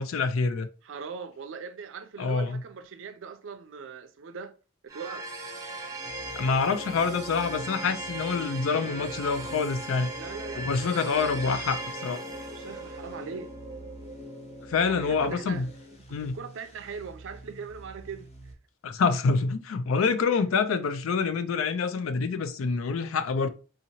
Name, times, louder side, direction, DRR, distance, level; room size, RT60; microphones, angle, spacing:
voice 1, 0.0-0.7 2.2-2.6 6.4-10.1 10.6-12.2 14.7-15.7 16.1-16.4 18.8-23.5, left 5 dB, 70° left, 0.4 m, -26 dB
voice 2, 0.8-4.6 4.8-5.3 10.1-11.8 12.5-13.5 14.8-18.3, right 5 dB, 60° right, 0.4 m, -41 dB
sound 1, 4.9-16.0, right 1 dB, 15° right, 0.6 m, -38 dB
sound 2, 6.0-18.5, right 2 dB, 30° left, 0.7 m, -49 dB
3.7 x 2.8 x 2.8 m
head